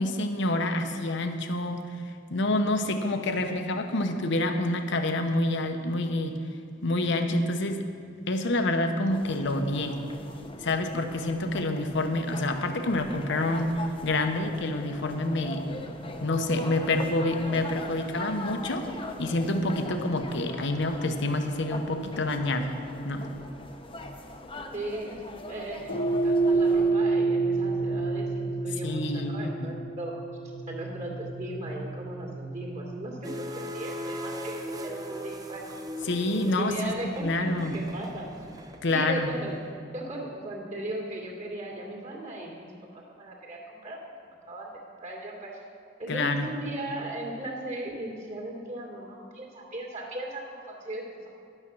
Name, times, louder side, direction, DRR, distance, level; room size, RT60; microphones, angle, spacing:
voice 1, 0.0-2.0 2.3-6.4 6.8-7.8 8.3-10.0 10.6-13.7 14.0-15.6 16.2-18.9 19.2-22.7 23.0-23.3 28.8-29.5 36.0-36.7 37.2-37.8 38.8-39.4 46.1-46.5, left 2 dB, 65° left, 6 dB, 0.9 m, -27 dB
sound 1, 9.1-26.9, left 1 dB, 25° left, 0.8 m, -41 dB
voice 2, 24.7-25.2 25.5-25.9 26.2-30.1 30.7-35.8 36.4-38.3 38.9-39.5 39.9-45.6 46.0-51.3, right 1 dB, 40° right, -2 dB, 2.5 m, -37 dB
sound 2, 25.9-34.3, right 3 dB, 85° left, 1.7 m, -29 dB
sound 3, 33.2-39.6, equal, 20° right, 0.8 m, -39 dB
11.0 x 8.9 x 6.2 m, 2.4 s
head